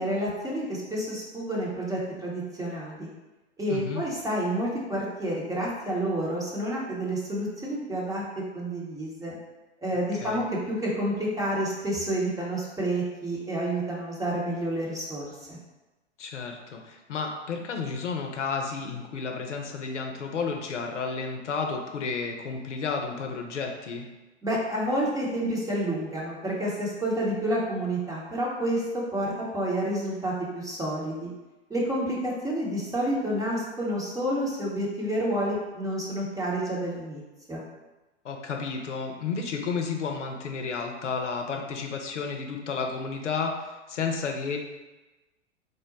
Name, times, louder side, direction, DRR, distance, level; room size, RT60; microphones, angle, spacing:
voice 1, 0.0-3.1 3.6-8.2 8.5-9.3 9.8-15.6 24.4-31.3 31.7-37.2 37.5-37.6, right 1 dB, 10° right, -5 dB, 0.8 m, -29 dB
voice 2, 3.7-4.0 10.1-10.4 16.2-24.1 38.2-44.6, left 5 dB, 80° left, 2 dB, 0.6 m, -32 dB
3.8 x 2.1 x 3.9 m, 1.1 s
figure-of-eight pair, 95°, 36 cm